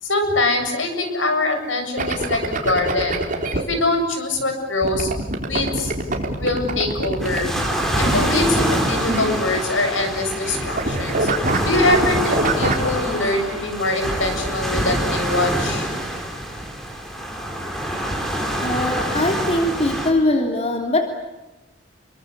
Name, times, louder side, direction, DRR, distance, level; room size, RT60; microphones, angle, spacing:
voice 1, 0.0-3.2 3.7-5.1 5.5-5.9 6.4-7.5 8.0-11.3 11.6-15.9, left 2 dB, 85° left, 6 dB, 7.7 m, -23 dB
sound 1, 2.0-3.6 4.8-9.9 10.2-10.5 10.7-12.9, right 2 dB, 45° right, 4.1 m, -25 dB
sound 2, 7.2-20.1, equal, ahead, 5.3 m, -25 dB
voice 2, 18.6-21.0, left 1 dB, 35° left, 3 dB, 3.2 m, -21 dB
29.0 x 24.0 x 8.4 m, 1.0 s
head